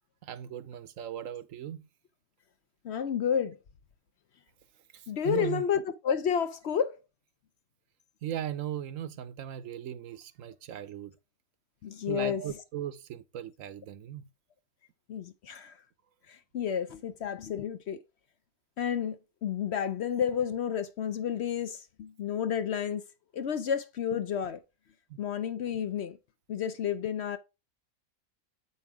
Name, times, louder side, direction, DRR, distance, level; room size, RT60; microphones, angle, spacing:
voice 1, 0.2-1.8 4.9-5.6 8.2-11.1 12.1-14.2 25.1-25.2, right 10 dB, 75° right, 1.0 m, -38 dB
voice 2, 2.8-3.6 5.1-7.0 11.8-12.4 15.1-15.7 16.3-18.0 18.8-23.0 23.3-24.6 25.2-26.2 26.5-27.4, left 8 dB, 60° left, 0.8 m, -31 dB
8.0 x 5.4 x 3.6 m
omnidirectional pair, 1.5 m